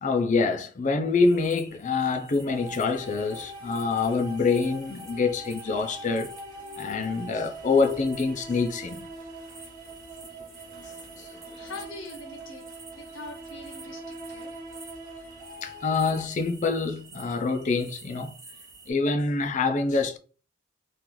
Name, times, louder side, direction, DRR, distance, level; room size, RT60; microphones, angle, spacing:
voice 1, 0.0-6.3 6.8-9.0 10.7-11.5 15.6-18.4 18.9-20.2, left 4 dB, 40° left, 0.5 m, -26 dB
sound 1, 1.2-18.9, right 4 dB, 15° right, 1.1 m, -50 dB
sound 2, 2.5-16.2, right 1 dB, 40° right, 1.2 m, -43 dB
voice 2, 11.5-12.7 12.9-14.5, left 2 dB, 65° left, 0.9 m, -42 dB
3.0 x 2.5 x 3.7 m
head